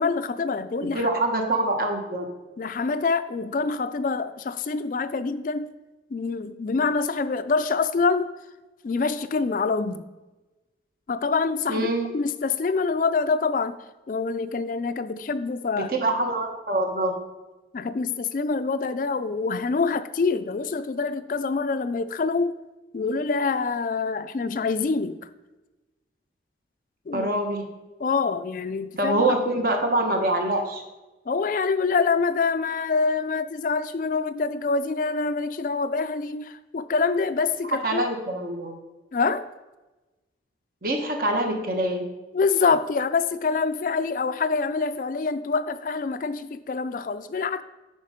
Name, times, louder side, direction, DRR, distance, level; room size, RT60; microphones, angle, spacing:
voice 1, 0.0-1.1 2.6-5.7 6.1-8.3 8.8-10.1 11.1-11.9 12.1-13.8 14.1-15.9 17.7-22.5 22.9-25.2 27.1-27.3 28.0-29.2 31.3-38.0 39.1-39.5 42.3-47.6, left 4 dB, 45° left, 12 dB, 0.3 m, -25 dB
voice 2, 0.9-2.2 11.7-12.1 15.8-17.1 27.1-27.6 29.0-30.8 37.6-38.7 40.8-42.0, right 1 dB, 50° right, 3 dB, 1.3 m, -25 dB
9.9 x 4.4 x 5.1 m, 1.1 s
head